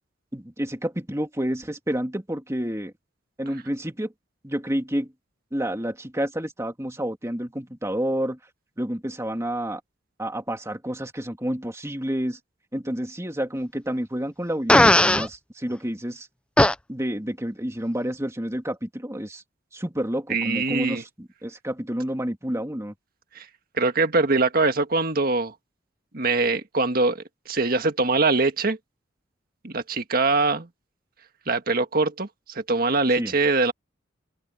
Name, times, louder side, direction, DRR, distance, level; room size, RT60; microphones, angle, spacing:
voice 1, 0.3-2.9 3.4-4.1 4.4-5.1 5.5-8.4 8.8-9.8 10.2-12.4 12.7-16.3 16.9-19.4 19.7-22.9 33.2-33.3, equal, 15° right, 2.7 m, -29 dB
Fart, 14.7-15.3 16.6-16.7, left 1 dB, 5° left, 0.5 m, -15 dB
voice 2, 20.3-21.0 23.4-23.5 23.7-25.5 26.1-28.8 29.6-30.7 31.5-33.7, right 3 dB, 50° right, 1.7 m, -23 dB
open air
head